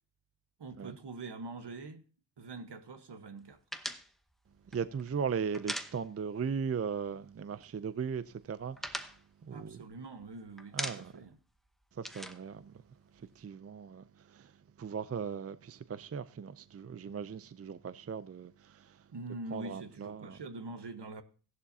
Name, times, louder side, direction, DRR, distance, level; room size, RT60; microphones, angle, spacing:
voice 1, 0.6-2.0 2.4-3.6 9.5-11.4 19.1-21.2, right 3 dB, 70° right, 1.2 m, -44 dB
sound 1, 3.7-6.5 6.8-6.9 7.2-7.9 8.3-10.2 10.6-11.3 11.6-13.4, equal, ahead, 0.9 m, -41 dB
voice 2, 4.7-9.1 9.4-9.8 10.7-11.1 12.0-12.7 13.2-14.5 14.8-19.0 19.5-20.4, right 6 dB, 35° right, 0.4 m, -38 dB
15.5 x 11.0 x 2.7 m
wide cardioid pair, 70°, 43 cm